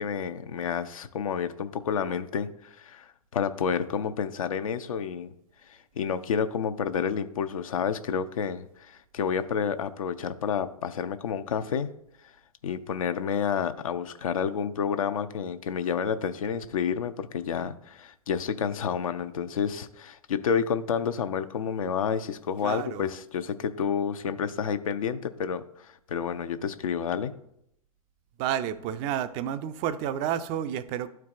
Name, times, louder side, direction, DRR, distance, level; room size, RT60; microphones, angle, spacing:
voice 1, 0.0-5.3 5.7-11.9 12.6-27.3, left 7 dB, 65° left, 10 dB, 0.6 m, -30 dB
voice 2, 22.6-23.1 28.4-31.1, right 10 dB, 30° right, 11 dB, 0.4 m, -30 dB
12.5 x 4.5 x 2.5 m, 0.75 s
figure-of-eight pair, 105°, 19 cm